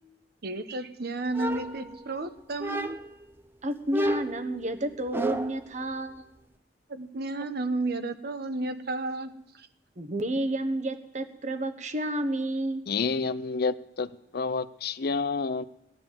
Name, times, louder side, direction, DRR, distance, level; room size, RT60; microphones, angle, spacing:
voice 1, 0.4-3.0 6.9-9.3, right 2 dB, 60° right, 9 dB, 1.0 m, -32 dB
sound 1, 1.3-2.2 2.6-3.2 3.9-5.7, right 1 dB, 15° right, 0.7 m, -32 dB
voice 2, 3.6-6.3 10.0-12.8, right 1 dB, 45° right, 9 dB, 1.2 m, -30 dB
voice 3, 12.9-15.6, left 4 dB, 60° left, 15 dB, 0.6 m, -29 dB
17.5 x 11.0 x 7.4 m, 0.83 s
head